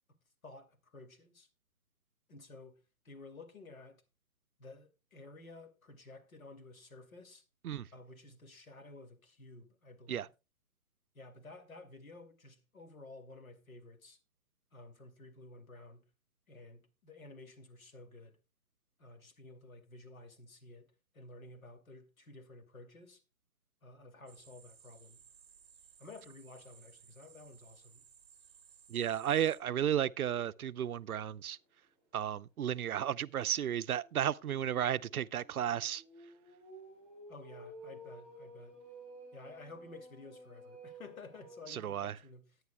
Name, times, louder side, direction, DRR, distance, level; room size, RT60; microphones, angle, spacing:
voice 1, 0.4-1.5 2.3-2.8 3.0-4.0 4.6-7.4 7.9-10.3 11.1-14.2 14.7-16.1 16.5-18.4 19.0-23.2 23.8-25.2 26.0-28.0 37.3-38.8 39.3-42.6, left 2 dB, 70° left, 2.5 m, -53 dB
sound 1, 24.3-29.6, right 7 dB, 20° right, 1.0 m, -60 dB
voice 2, 28.9-31.6 32.1-36.0 41.7-42.1, right 10 dB, 90° right, 0.6 m, -33 dB
sound 2, 30.5-30.6 31.1-31.2 31.6-31.7 33.7-41.7, right 1 dB, 5° left, 2.1 m, -54 dB
19.0 x 9.5 x 2.2 m
hypercardioid pair, 170°, 42 cm